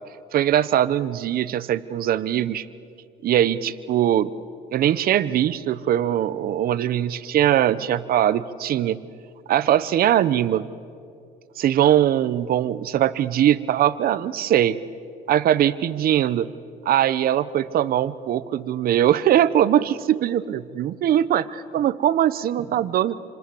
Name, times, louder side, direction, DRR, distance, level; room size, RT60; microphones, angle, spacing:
voice 1, 0.3-2.7 3.2-4.3 4.7-9.0 9.5-10.6 11.6-14.8 15.3-16.5 16.8-23.1, right 11 dB, 60° right, 16 dB, 1.0 m, -21 dB
28.0 x 26.5 x 7.9 m, 2.4 s
cardioid pair, 110°, 17 cm